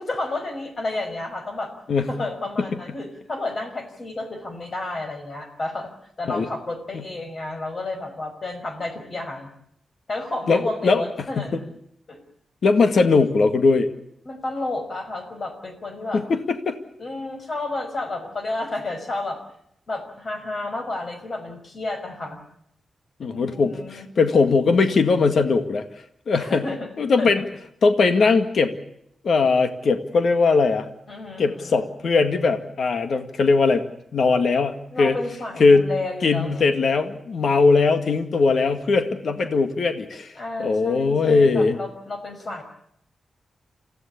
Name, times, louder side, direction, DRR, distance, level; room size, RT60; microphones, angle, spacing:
voice 1, 0.0-1.7 2.1-5.9 6.2-9.5 10.1-11.6 12.1-12.2 14.3-16.2 17.0-19.4 19.9-22.4 23.2-24.1 26.4-26.9 27.2-27.3 31.1-31.9 34.9-36.7 40.4-42.6, left 2 dB, 40° left, 7 dB, 5.4 m, -31 dB
voice 2, 10.5-11.0 11.4-11.6 12.6-13.9 16.1-16.8 23.2-25.9 26.3-26.6 27.0-27.4 27.8-28.8 29.2-30.9 31.4-35.2 35.6-35.9 36.2-41.8, left 4 dB, 60° left, 8 dB, 1.9 m, -20 dB
28.0 x 16.0 x 8.5 m, 0.74 s
wide cardioid pair, 140°, 0 cm